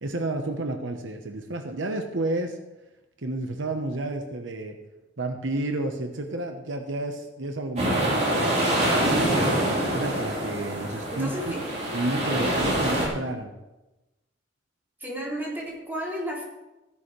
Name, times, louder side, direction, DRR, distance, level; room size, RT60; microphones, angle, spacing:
voice 1, 0.0-2.6 3.2-4.8 5.2-9.5 9.9-11.6 11.9-13.5, right 2 dB, 75° right, 5 dB, 1.1 m, -31 dB
sound 1, 7.8-13.1, right 1 dB, 40° right, 3.7 m, -25 dB
voice 2, 11.1-11.6 15.0-16.4, equal, 10° right, -4 dB, 3.2 m, -33 dB
15.5 x 10.5 x 3.3 m, 1.0 s
head